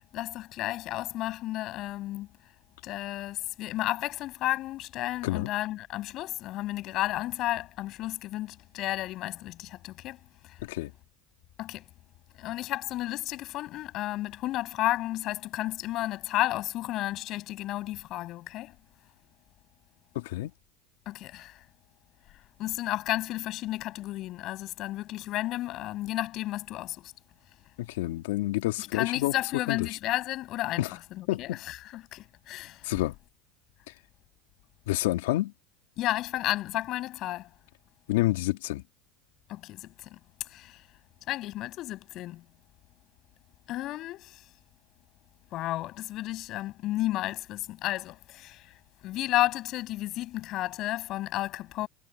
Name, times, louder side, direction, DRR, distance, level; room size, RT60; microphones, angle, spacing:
voice 1, 0.1-2.3 2.8-10.2 11.6-11.8 12.4-18.7 21.1-21.5 22.6-27.0 28.8-30.8 31.2-32.8 36.0-37.4 39.5-39.8 40.5-40.7 41.3-42.4 43.7-44.2 45.5-48.6 49.0-51.9, left 15 dB, 50° left, 7.8 m, -32 dB
voice 2, 10.6-10.9 20.1-20.5 27.8-29.3 29.7-29.9 30.8-30.9 31.3-31.6 32.8-33.1 34.9-35.5 38.1-38.8, left 17 dB, 80° left, 2.6 m, -28 dB
supercardioid pair, 100°, 0 cm